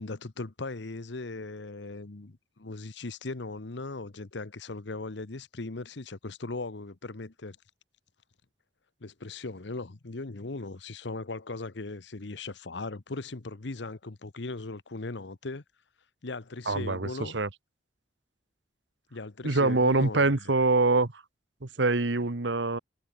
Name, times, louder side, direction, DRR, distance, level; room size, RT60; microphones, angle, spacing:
voice 1, 0.0-7.6 9.0-15.6 16.2-17.4 19.1-20.4, left 3 dB, 75° left, 1.0 m, -38 dB
voice 2, 16.7-17.5 19.4-21.2 21.6-22.8, right 3 dB, 80° right, 1.4 m, -25 dB
head